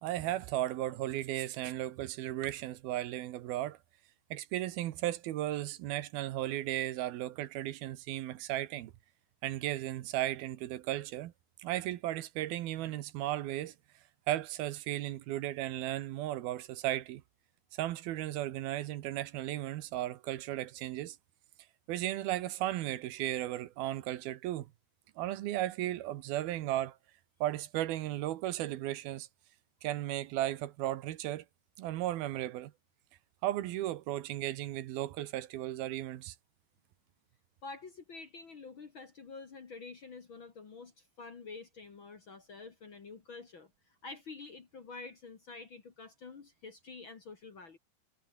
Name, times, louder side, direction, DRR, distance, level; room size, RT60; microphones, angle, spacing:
voice 1, 0.0-3.8 4.3-8.9 9.4-11.3 11.6-13.7 14.3-17.2 17.7-21.2 21.9-24.7 25.2-27.0 27.4-29.3 29.8-31.4 31.8-32.7 33.4-36.4, right 14 dB, 80° right, 3.0 m, -35 dB
voice 2, 37.6-47.8, left 4 dB, 40° left, 2.0 m, -48 dB
omnidirectional pair, 4.4 m